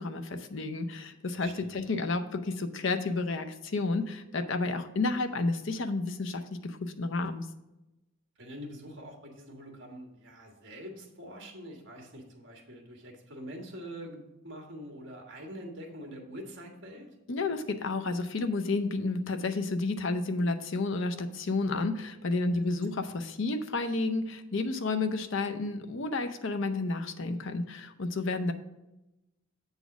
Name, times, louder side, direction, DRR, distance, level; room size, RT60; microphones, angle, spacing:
voice 1, 0.0-7.5 17.3-28.5, left 3 dB, 60° left, 7 dB, 0.6 m, -31 dB
voice 2, 1.4-1.8 8.4-17.1 22.5-22.6, equal, 55° right, 1 dB, 1.6 m, -45 dB
8.1 x 4.0 x 6.0 m, 0.95 s
head